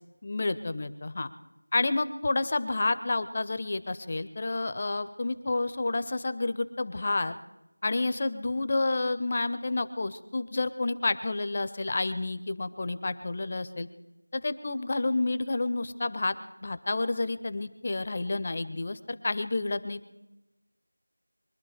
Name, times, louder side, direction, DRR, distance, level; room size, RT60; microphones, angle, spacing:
voice 1, 0.2-1.3 1.7-7.3 7.8-13.9 14.3-16.3 16.6-20.2, left 2 dB, 20° left, 13 dB, 0.5 m, -30 dB
23.0 x 12.0 x 4.9 m, 0.99 s
figure-of-eight pair, 175°, 0 cm